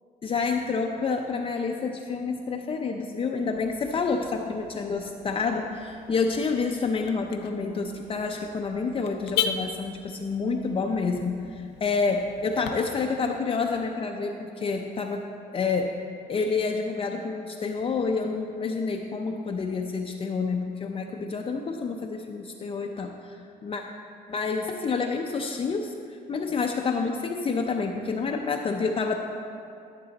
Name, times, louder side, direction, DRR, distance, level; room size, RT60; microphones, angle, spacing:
voice 1, 0.2-15.3 15.5-15.9 16.3-23.8 24.3-29.1, left 4 dB, 35° left, 2 dB, 0.6 m, -28 dB
Car / Alarm, 3.5-12.7, left 8 dB, 85° left, 0.6 m, -38 dB
12.5 x 6.8 x 4.0 m, 2.5 s
cardioid pair, 110°, 17 cm